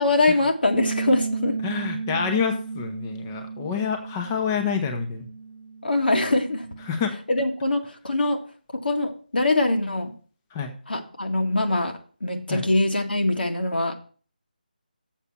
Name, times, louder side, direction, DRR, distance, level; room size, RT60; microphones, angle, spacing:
voice 1, 0.0-1.6 5.8-6.7 7.3-8.4 8.7-10.1 10.9-13.9, left 2 dB, 80° left, 4 dB, 1.8 m, -23 dB
Bass guitar, 0.7-7.0, right 4 dB, 70° right, 0.8 m, -34 dB
voice 2, 1.6-5.3 6.8-7.2 10.5-10.7 12.5-12.6, left 6 dB, 15° left, 4 dB, 0.8 m, -27 dB
7.4 x 5.5 x 6.9 m, 0.41 s
figure-of-eight pair, 165°, 5 cm